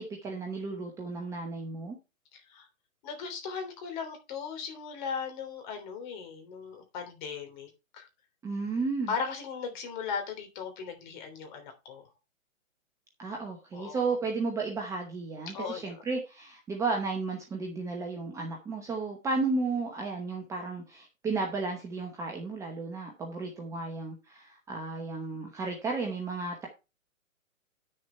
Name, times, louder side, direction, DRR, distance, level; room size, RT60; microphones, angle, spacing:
voice 1, 0.0-2.0 8.4-9.1 13.2-26.7, right 3 dB, 5° right, 1 dB, 0.9 m, -33 dB
voice 2, 2.3-2.7 3.0-8.1 9.1-12.0 13.7-14.1 15.5-16.0, left 6 dB, 35° left, 5 dB, 3.3 m, -37 dB
10.0 x 6.6 x 4.4 m, 0.28 s
hypercardioid pair, 145°, 41 cm